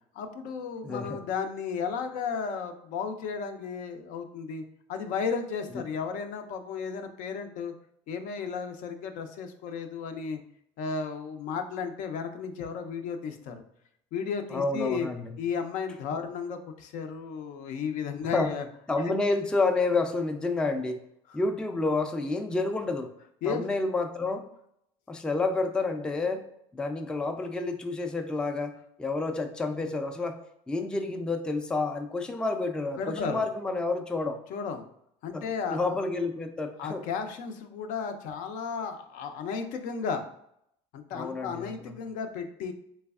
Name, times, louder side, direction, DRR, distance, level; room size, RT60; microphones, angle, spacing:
voice 1, 0.1-4.6 4.9-7.7 8.1-10.4 10.8-13.6 14.1-15.1 15.4-18.7 19.0-19.1 21.3-21.4 23.4-23.6 33.0-33.4 34.5-34.8 35.2-35.9 36.8-40.2 40.9-42.7, left 6 dB, 65° left, 7 dB, 0.5 m, -34 dB
voice 2, 0.8-1.2 14.5-15.3 18.3-18.5 18.9-21.0 21.3-23.1 23.5-24.4 25.1-26.4 26.7-30.4 30.7-34.4 35.3-35.4 35.7-37.0 41.1-41.9, left 3 dB, 5° left, 6 dB, 0.3 m, -29 dB
3.3 x 3.2 x 2.3 m, 0.74 s
supercardioid pair, 95°, 15 cm